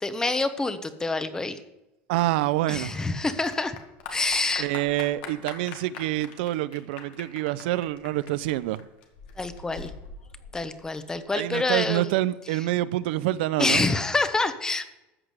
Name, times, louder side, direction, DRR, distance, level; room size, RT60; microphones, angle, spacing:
voice 1, 0.0-1.6 2.7-3.8 4.1-4.7 9.4-9.9 10.5-12.1 12.5-12.6 13.6-14.9, left 3 dB, 10° left, 1.0 m, -27 dB
voice 2, 2.1-3.0 4.6-8.8 11.3-13.9, right 15 dB, 85° right, 0.6 m, -27 dB
Clapping / Applause, 2.2-11.2, left 5 dB, 90° left, 2.2 m, -44 dB
13.5 x 5.9 x 8.1 m
supercardioid pair, 140°, 5 cm